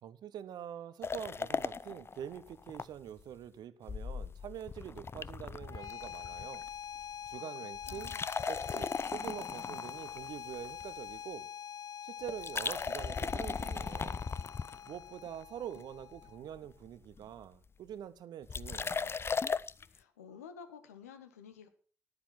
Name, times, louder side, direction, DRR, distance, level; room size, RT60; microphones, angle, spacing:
voice 1, 0.0-6.7 7.3-8.1 8.5-11.5 12.0-14.2 14.9-19.2, right 10 dB, 60° right, 0.8 m, -45 dB
sound 1, 1.0-2.9 3.2-3.3 3.9-6.7 7.0-7.3 7.7-11.1 12.3-15.3 15.7-16.3 16.5-16.6 16.9-17.0 17.1-17.4 18.5-19.8, left 5 dB, 30° left, 0.5 m, -37 dB
sound 2, 5.5-16.6, left 9 dB, 50° left, 1.3 m, -45 dB
voice 2, 7.3-8.3 19.8-21.7, left 7 dB, 85° left, 1.0 m, -52 dB
10.5 x 9.7 x 6.0 m
figure-of-eight pair, 40°, 8 cm